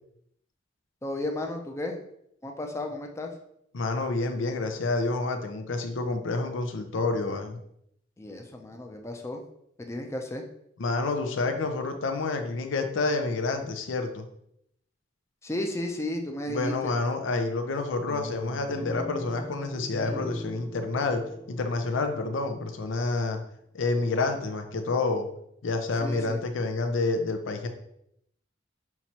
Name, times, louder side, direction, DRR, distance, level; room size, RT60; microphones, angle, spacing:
voice 1, 1.0-2.0 2.4-3.3 8.2-9.4 9.8-10.4 15.4-16.9 26.0-26.4, left 1 dB, 15° left, 3 dB, 0.5 m, -33 dB
voice 2, 3.7-7.6 10.8-14.3 16.5-21.2 21.5-23.4 23.7-25.3 25.6-27.7, left 3 dB, 85° left, 6 dB, 0.5 m, -28 dB
sound 1, 18.1-23.2, equal, 50° left, 1.0 m, -41 dB
5.7 x 3.0 x 2.8 m, 0.75 s
head